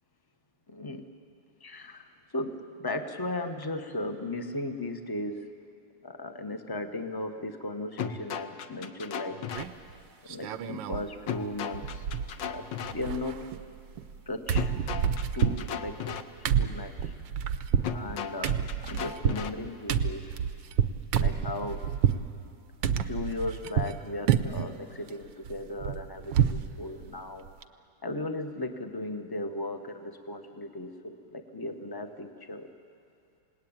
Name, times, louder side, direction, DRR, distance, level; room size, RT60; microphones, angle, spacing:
voice 1, 0.7-1.0 1.6-5.5 6.0-9.4 10.3-12.1 12.4-13.6 14.3-14.7 15.3-16.2 16.6-17.1 17.9-20.2 21.2-21.9 23.0-27.5 28.0-32.7, left 2 dB, 15° left, 6 dB, 0.8 m, -36 dB
sound 1, 8.0-9.6 11.3-12.9 14.5-16.2 17.8-19.5, left 8 dB, 65° left, 1.5 m, -36 dB
sound 2, 9.5-9.9 10.3-11.1 11.4-11.5 11.7-12.6 12.8-14.2 14.5-22.3 22.8-24.0 24.3-24.7 25.1-26.7 27.0-27.1 27.4-27.6, right 8 dB, 65° right, 1.4 m, -29 dB
28.5 x 19.0 x 8.9 m, 2.5 s
omnidirectional pair, 2.4 m